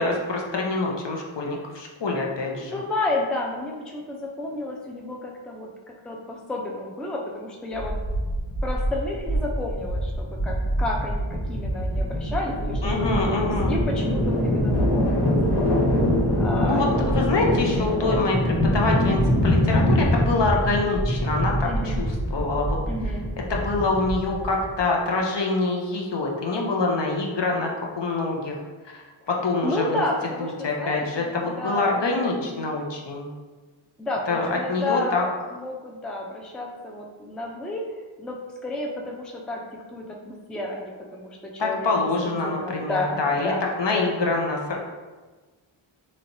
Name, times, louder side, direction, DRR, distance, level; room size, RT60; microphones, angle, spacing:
voice 1, 0.0-2.8 12.8-13.7 16.6-22.8 23.5-27.7 28.0-28.6 28.8-30.0 30.4-33.3 34.3-35.2 41.6-43.5 43.8-44.8, left 3 dB, 60° left, -1 dB, 0.7 m, -25 dB
voice 2, 2.5-5.7 6.0-8.0 8.6-15.3 16.4-16.8 21.6-22.0 22.9-23.3 29.6-32.7 34.0-39.6 39.9-41.9 42.2-43.7 43.9-44.1, left 2 dB, ahead, -1 dB, 0.4 m, -31 dB
sound 1, 7.7-24.8, equal, 80° left, 1.4 m, -24 dB
3.2 x 2.9 x 2.6 m, 1.3 s
wide cardioid pair, 50°, 49 cm